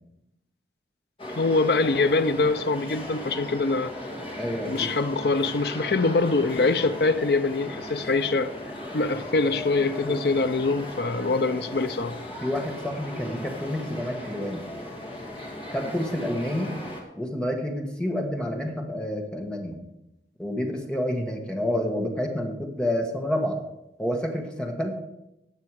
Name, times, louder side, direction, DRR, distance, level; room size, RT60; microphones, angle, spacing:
sound 1, 1.2-17.0, left 1 dB, 30° left, 2.2 m, -37 dB
voice 1, 1.3-3.9 4.7-8.5 8.9-12.2, left 3 dB, 60° left, 0.6 m, -24 dB
voice 2, 4.4-4.9 10.0-10.2 12.4-14.6 15.7-16.7 17.2-19.8 20.4-23.6 24.0-25.0, left 1 dB, 5° left, 1.4 m, -29 dB
17.5 x 6.7 x 4.8 m
head